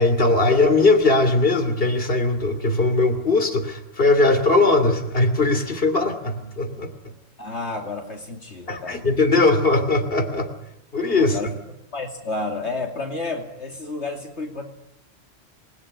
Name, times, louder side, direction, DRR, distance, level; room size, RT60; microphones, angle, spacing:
voice 1, 0.0-6.9 8.7-10.5 10.9-11.4, left 2 dB, 55° left, 8 dB, 3.1 m, -19 dB
voice 2, 7.4-9.1 11.2-11.5 11.9-14.7, left 3 dB, 70° left, 2 dB, 3.0 m, -31 dB
28.0 x 21.0 x 10.0 m, 0.86 s
omnidirectional pair, 1.2 m